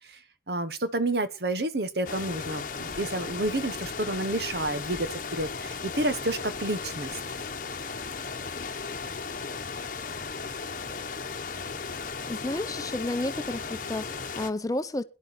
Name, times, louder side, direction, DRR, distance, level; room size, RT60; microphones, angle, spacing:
voice 1, 0.5-7.1, right 2 dB, 65° right, 1.2 m, -30 dB
sound 1, 2.0-14.5, left 5 dB, 50° left, 1.0 m, -36 dB
voice 2, 12.3-15.0, left 1 dB, 20° left, 0.7 m, -31 dB
17.5 x 11.0 x 4.2 m
head